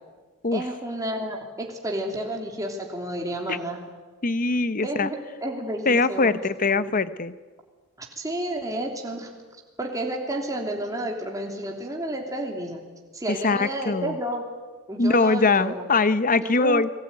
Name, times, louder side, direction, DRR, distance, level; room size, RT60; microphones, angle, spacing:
voice 1, 0.5-3.8 4.8-7.0 8.0-9.3 9.8-12.8 13.1-14.4 14.9-15.9 16.3-16.8, right 1 dB, 15° right, 1 dB, 3.1 m, -31 dB
voice 2, 4.2-5.1 5.9-7.3 13.4-14.2 15.0-16.9, left 3 dB, 40° left, 15 dB, 0.9 m, -22 dB
30.0 x 20.0 x 9.6 m, 1.4 s
head